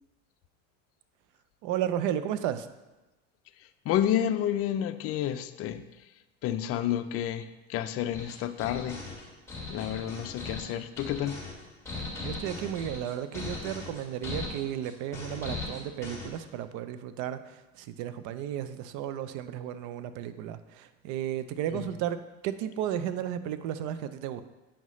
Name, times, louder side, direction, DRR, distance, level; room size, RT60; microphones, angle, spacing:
voice 1, 1.6-2.7 12.2-24.4, right 10 dB, 55° right, 12 dB, 0.6 m, -33 dB
voice 2, 3.9-5.8 6.4-9.0 9.7-11.4 21.7-21.8, left 11 dB, 40° left, 10 dB, 0.5 m, -30 dB
sound 1, 8.1-16.4, left 3 dB, 5° left, 2.1 m, -39 dB
8.6 x 5.5 x 3.1 m, 1.1 s
supercardioid pair, 115°, 35 cm